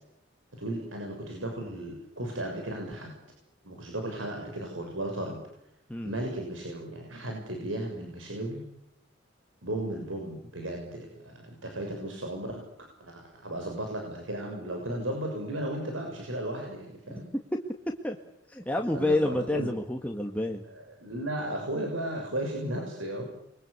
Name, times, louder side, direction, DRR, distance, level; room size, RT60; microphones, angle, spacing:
voice 1, 0.5-3.1 3.6-5.4 6.0-8.6 9.6-12.6 13.1-17.3 18.9-19.7 20.6-23.3, right 1 dB, 85° right, 2 dB, 6.7 m, -35 dB
voice 2, 18.5-20.6, left 1 dB, 10° left, 2 dB, 1.9 m, -29 dB
30.0 x 23.5 x 8.4 m, 0.83 s
head